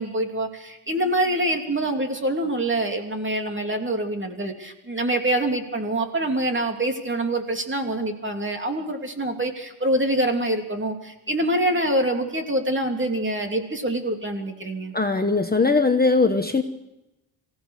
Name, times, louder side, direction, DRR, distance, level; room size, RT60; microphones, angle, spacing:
voice 1, 0.0-14.9, right 1 dB, 25° right, 3 dB, 3.0 m, -25 dB
voice 2, 14.9-16.6, left 3 dB, 20° left, 5 dB, 1.1 m, -20 dB
25.0 x 16.5 x 6.6 m, 0.94 s
wide cardioid pair, 130°, 48 cm